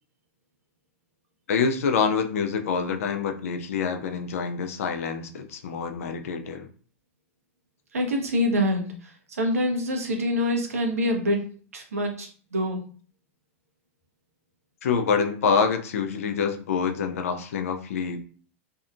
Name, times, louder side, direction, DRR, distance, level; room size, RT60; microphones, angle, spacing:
voice 1, 1.5-6.7 14.8-18.2, left 6 dB, 75° left, 6 dB, 0.4 m, -26 dB
voice 2, 7.9-8.9 9.4-11.4 11.7-12.8, left 1 dB, 90° right, 3 dB, 0.7 m, -25 dB
2.6 x 2.2 x 2.5 m, 0.43 s
hypercardioid pair, 95°, 8 cm